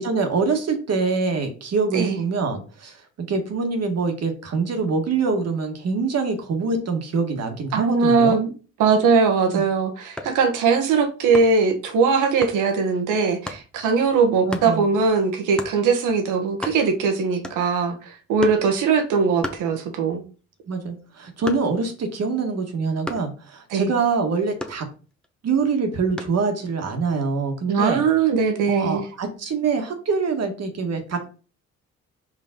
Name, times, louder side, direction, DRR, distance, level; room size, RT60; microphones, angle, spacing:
voice 1, 0.0-8.4 9.5-9.6 14.5-14.9 20.7-24.8 25.4-28.0 28.7-31.3, right 4 dB, 55° right, 1.6 m, -25 dB
voice 2, 7.7-8.5 8.8-20.2 23.7-23.9 27.7-29.0, right 5 dB, 85° right, 1.4 m, -20 dB
sound 1, 10.0-10.5 11.3-11.7 12.4-12.6 13.5-13.7 14.5-14.7 15.6-15.8 16.2-16.3 16.5-17.1 17.4-17.8 18.4-18.7 19.4-20.2 20.5-21.9 23.0-23.4 24.6-25.3 26.2-26.5, left 1 dB, 5° left, 1.0 m, -34 dB
5.1 x 5.0 x 3.8 m
cardioid pair, 90°, 30 cm